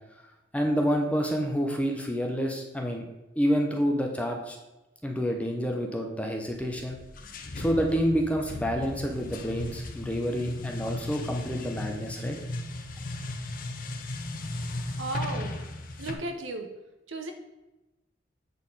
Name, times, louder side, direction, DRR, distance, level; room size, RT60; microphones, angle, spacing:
voice 1, 0.5-3.0 3.4-4.6 5.0-7.0 7.6-12.4, equal, 5° left, 2 dB, 0.8 m, -28 dB
sound 1, 6.5-16.1, left 2 dB, 45° left, 0.8 m, -36 dB
voice 2, 15.0-15.6 16.0-16.7 17.1-17.3, right 2 dB, 85° right, 5 dB, 0.9 m, -34 dB
8.3 x 4.4 x 5.5 m, 1.0 s
head